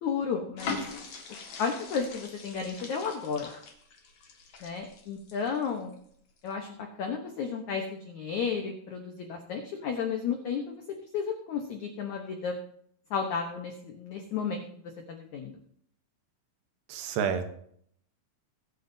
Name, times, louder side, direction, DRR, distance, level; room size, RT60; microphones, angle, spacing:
voice 1, 0.0-0.8 1.6-3.5 4.6-5.9 6.4-10.8 11.1-12.5 13.1-15.6, left 6 dB, 75° left, 3 dB, 1.7 m, -33 dB
sound 1, 0.6-5.9 6.4-6.5, left 4 dB, 50° left, 2.5 m, -41 dB
voice 2, 16.9-17.5, right 7 dB, 80° right, 7 dB, 3.2 m, -29 dB
22.5 x 8.4 x 2.7 m, 0.66 s
omnidirectional pair, 5.0 m